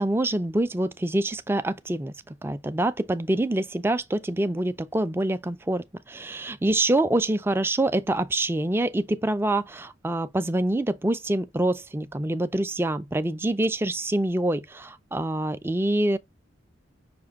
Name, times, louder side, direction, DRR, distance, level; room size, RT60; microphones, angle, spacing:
voice 1, 0.0-16.2, right 1 dB, 10° right, 0.3 m, -26 dB
5.9 x 2.5 x 3.5 m
head